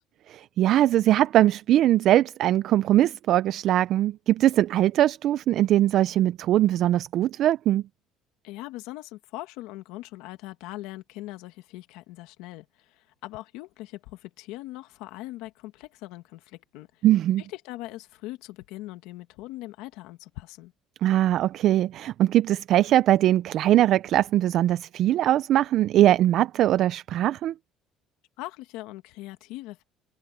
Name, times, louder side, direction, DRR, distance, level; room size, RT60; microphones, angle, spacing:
voice 1, 0.3-7.8 17.0-17.4 21.0-27.5, right 13 dB, 55° right, 0.4 m, -21 dB
voice 2, 8.4-17.0 17.4-20.7 28.4-29.8, left 17 dB, 90° left, 1.9 m, -41 dB
cardioid pair, 145°, 0 cm